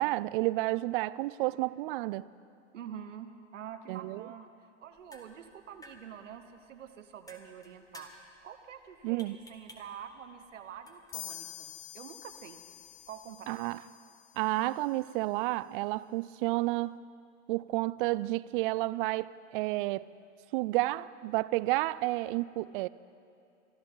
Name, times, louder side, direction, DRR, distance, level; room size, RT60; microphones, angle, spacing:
voice 1, 0.0-2.3 3.9-4.2 9.0-9.4 13.5-13.8 14.4-17.0 17.5-20.0 20.5-22.9, right 19 dB, 45° right, 19 dB, 0.4 m, -31 dB
voice 2, 2.7-4.5 4.8-8.1 8.4-12.6 13.1-13.6, right 8 dB, 75° right, 9 dB, 1.2 m, -46 dB
sound 1, 4.8-13.4, left 1 dB, 10° left, 1.5 m, -57 dB
sound 2, 11.1-14.7, left 13 dB, 30° left, 0.7 m, -47 dB
23.5 x 13.5 x 4.0 m, 2.5 s
hypercardioid pair, 100°, 37 cm